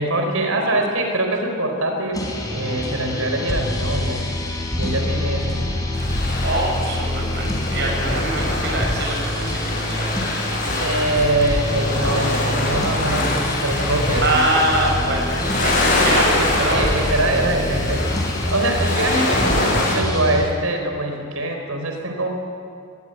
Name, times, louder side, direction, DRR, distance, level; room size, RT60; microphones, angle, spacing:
voice 1, 0.0-2.2 2.5-4.3 4.8-5.6 10.8-14.4 16.2-22.3, right 1 dB, 75° right, 4 dB, 4.4 m, -23 dB
sound 1, 2.1-20.4, left 1 dB, 15° left, 4.6 m, -25 dB
sound 2, 5.9-19.9, left 2 dB, 40° left, 7.6 m, -25 dB
voice 2, 6.4-10.1 14.2-15.3 15.6-16.9, right 1 dB, 50° right, 0 dB, 7.7 m, -24 dB
23.5 x 21.0 x 9.3 m, 2.4 s
head